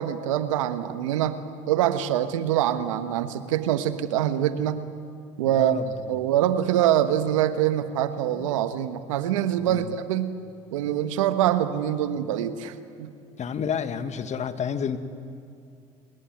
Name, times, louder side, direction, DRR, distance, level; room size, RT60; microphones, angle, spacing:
voice 1, 0.0-1.4 1.7-4.8 5.4-5.8 6.1-10.3 10.7-13.1, right 11 dB, 85° right, 11 dB, 1.3 m, -24 dB
voice 2, 5.4-5.8 8.3-8.5 9.6-9.9 13.4-15.0, left 7 dB, 45° left, 10 dB, 1.9 m, -30 dB
27.0 x 20.5 x 9.5 m, 2.6 s
hypercardioid pair, 70°, 16 cm